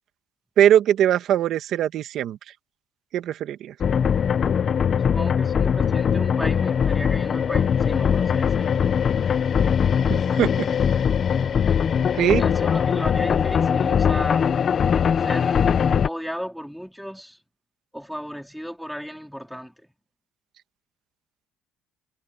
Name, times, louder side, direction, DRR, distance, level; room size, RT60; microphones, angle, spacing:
voice 1, 0.6-2.4 3.1-3.7 10.1-10.7 12.1-12.5, right 11 dB, 65° right, 2.0 m, -21 dB
sound 1, 3.8-16.1, left 7 dB, 45° left, 1.4 m, -21 dB
voice 2, 5.0-8.9 12.4-14.6 15.2-15.6 16.0-17.4 17.9-19.7, equal, ahead, 4.8 m, -34 dB
cardioid pair, 105°, 0 cm